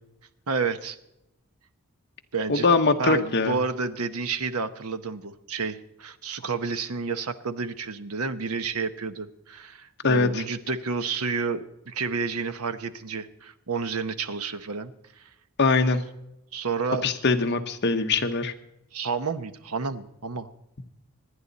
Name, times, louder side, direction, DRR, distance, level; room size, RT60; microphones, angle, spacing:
voice 1, 0.5-1.0 2.3-2.7 3.0-14.9 16.5-17.1 18.9-20.5, right 4 dB, 85° right, 11 dB, 1.0 m, -30 dB
voice 2, 2.5-3.6 10.0-10.4 15.6-16.0 17.0-18.5, left 3 dB, 50° left, 7 dB, 1.1 m, -22 dB
26.0 x 10.0 x 4.1 m, 0.87 s
head